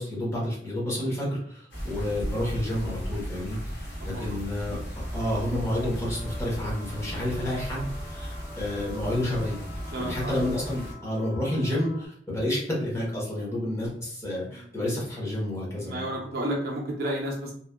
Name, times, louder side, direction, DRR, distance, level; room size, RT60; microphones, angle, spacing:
voice 1, 0.0-9.6 9.9-16.1, left 1 dB, 15° left, -5 dB, 0.9 m, -30 dB
sound 1, 1.7-10.9, equal, 70° left, 0.7 m, -36 dB
sound 2, 6.1-12.1, left 1 dB, 5° right, 0.6 m, -47 dB
voice 2, 9.9-10.3 14.5-14.7 15.8-17.5, right 1 dB, 60° right, -1 dB, 0.6 m, -31 dB
2.8 x 2.2 x 2.2 m, 0.63 s
head